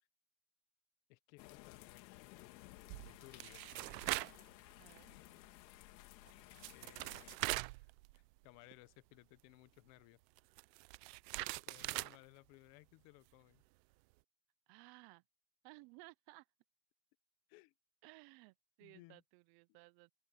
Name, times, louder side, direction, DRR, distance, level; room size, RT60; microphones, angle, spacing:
voice 1, 1.1-2.6 3.0-3.9 6.7-10.2 11.5-13.6 17.5-17.7 18.8-19.2, left 23 dB, 60° left, 1.4 m, -62 dB
sound 1, 1.4-7.4, left 19 dB, 90° left, 2.5 m, -57 dB
sound 2, 2.9-4.4 4.8-5.0 6.3-6.4 6.6-8.4 8.7-8.8 10.4-12.2, right 24 dB, 80° right, 0.6 m, -42 dB
voice 2, 4.8-5.2 14.7-15.2 15.6-16.5 18.0-20.1, right 25 dB, 50° right, 0.7 m, -59 dB
open air
supercardioid pair, 140°, 49 cm